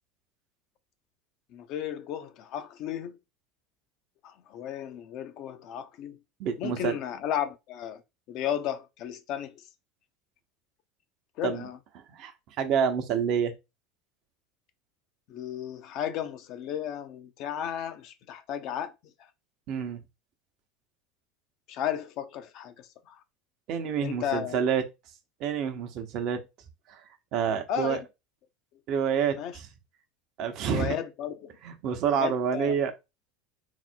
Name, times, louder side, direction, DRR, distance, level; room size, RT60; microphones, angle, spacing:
voice 1, 1.5-3.2 4.2-6.2 6.6-8.0 8.3-9.6 11.4-11.8 15.3-18.9 21.7-23.2 24.0-24.6 27.7-28.0 29.3-29.6 30.7-31.5 32.1-32.7, left 10 dB, 55° left, 0.6 m, -34 dB
voice 2, 6.4-7.0 11.4-11.7 12.1-12.3 12.6-13.5 19.7-20.0 23.7-24.8 25.4-26.4 26.9-27.0 27.3-28.0 28.9-29.7 30.4-31.0 31.6-32.9, right 7 dB, 55° right, 0.8 m, -28 dB
4.0 x 2.0 x 4.4 m
hypercardioid pair, 80°, 0 cm